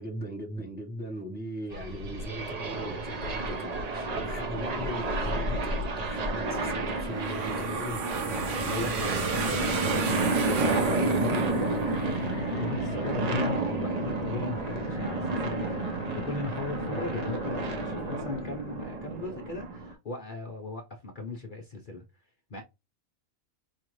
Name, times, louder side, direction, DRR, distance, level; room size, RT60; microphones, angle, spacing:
voice 1, 0.0-9.5, equal, 10° right, 0.8 m, -39 dB
sound 1, 1.7-19.9, right 2 dB, 40° right, 0.6 m, -31 dB
sound 2, 7.1-12.0, right 5 dB, 65° right, 1.1 m, -33 dB
sound 3, 8.3-18.9, left 6 dB, 75° left, 1.0 m, -40 dB
voice 2, 8.7-9.6 10.4-22.0 22.5-22.6, left 3 dB, 45° left, 0.8 m, -38 dB
4.9 x 2.4 x 3.1 m
omnidirectional pair, 1.4 m